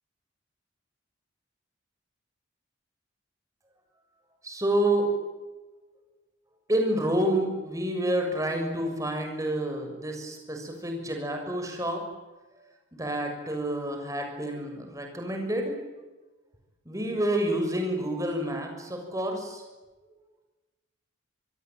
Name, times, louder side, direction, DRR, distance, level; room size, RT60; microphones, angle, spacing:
voice 1, 4.4-5.1 6.7-12.0 13.0-15.7 16.8-19.6, right 1 dB, 15° right, 3 dB, 6.7 m, -28 dB
26.5 x 21.5 x 9.2 m, 1.2 s
head